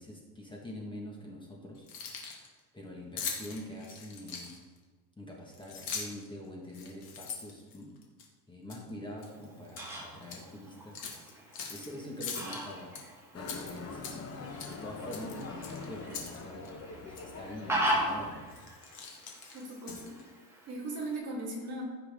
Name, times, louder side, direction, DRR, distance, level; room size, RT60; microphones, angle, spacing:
voice 1, 0.0-1.9 2.7-4.6 5.2-8.0 8.5-11.4 11.7-14.4 14.7-18.6, left 1 dB, 10° left, -1 dB, 1.4 m, -45 dB
Keys jangling, 1.8-2.5 3.2-4.8 5.5-6.3 6.7-8.3 8.7-8.9 9.2-9.9 10.2-10.4 10.9-11.9 12.2-13.0 13.4-14.3 14.6-14.8 15.1-16.4 16.6-16.7 17.1-17.3 17.9-18.1 18.5-20.2, left 6 dB, 45° left, 1.9 m, -41 dB
Fowl, 9.2-21.2, right 1 dB, 5° right, 1.6 m, -39 dB
Motorcycle, 13.3-18.4, left 4 dB, 30° left, 1.0 m, -44 dB
voice 2, 19.5-20.0 20.7-21.8, right 2 dB, 30° right, -5 dB, 3.1 m, -38 dB
15.5 x 5.9 x 3.6 m, 1.4 s
cardioid pair, 155°, 48 cm